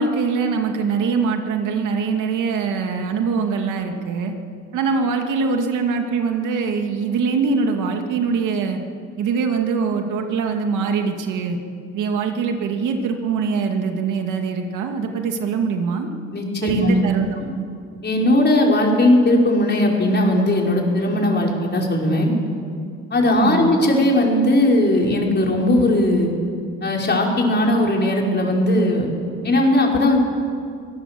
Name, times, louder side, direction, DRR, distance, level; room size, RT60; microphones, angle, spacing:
voice 1, 0.0-4.3 4.7-8.8 9.2-11.6 11.9-16.1 16.6-17.3 23.3-23.7, right 5 dB, 85° right, 4 dB, 2.4 m, -23 dB
voice 2, 16.3-17.0 17.4-17.5 18.0-22.3 23.1-26.3 26.8-29.1 29.4-30.2, left 1 dB, 35° left, -1 dB, 5.4 m, -18 dB
25.5 x 17.0 x 7.7 m, 2.3 s
cardioid pair, 90°, 30 cm